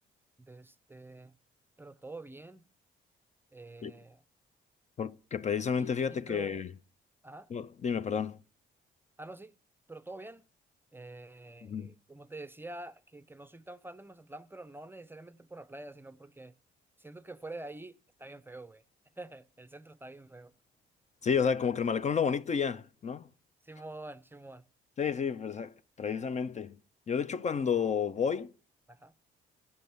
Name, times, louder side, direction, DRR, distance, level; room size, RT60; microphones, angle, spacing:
voice 1, 0.4-1.3 1.8-2.6 3.5-4.2 5.7-6.6 7.2-7.5 9.2-9.5 9.9-10.4 10.9-16.5 17.0-18.8 19.2-20.5 23.6-24.6 28.9-29.1, right 2 dB, 10° right, 0.6 m, -47 dB
voice 2, 5.0-6.7 7.5-8.4 11.6-11.9 21.2-23.3 25.0-26.8 27.1-28.5, left 6 dB, 35° left, 0.5 m, -31 dB
15.0 x 5.4 x 6.9 m
cardioid pair, 90°, 20 cm